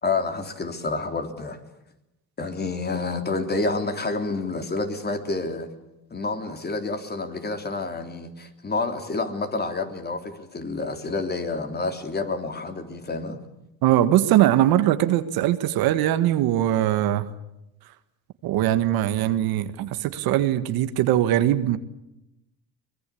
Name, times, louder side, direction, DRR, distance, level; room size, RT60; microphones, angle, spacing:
voice 1, 0.0-1.6 2.4-5.7 6.1-13.4, left 3 dB, 25° left, 6 dB, 3.3 m, -29 dB
voice 2, 13.8-17.3 18.4-21.8, right 13 dB, 75° right, 11 dB, 1.7 m, -21 dB
24.0 x 20.5 x 8.6 m, 0.86 s
cardioid pair, 105°, 37 cm